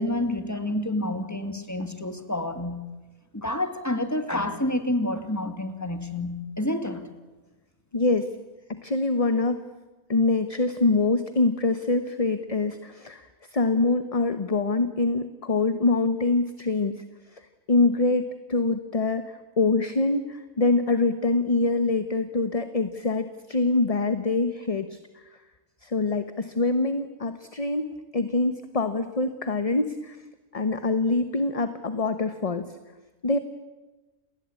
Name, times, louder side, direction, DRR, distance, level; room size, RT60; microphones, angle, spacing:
voice 1, 0.0-2.8 3.3-7.1, left 1 dB, 10° left, 8 dB, 2.3 m, -28 dB
voice 2, 7.9-8.3 8.7-9.6 10.1-17.0 17.3-17.4 17.7-25.0 25.8-27.9 28.1-30.2 30.5-32.6 33.2-33.4, left 3 dB, 30° left, 10 dB, 1.1 m, -24 dB
28.5 x 20.0 x 8.6 m, 1.2 s
omnidirectional pair, 1.4 m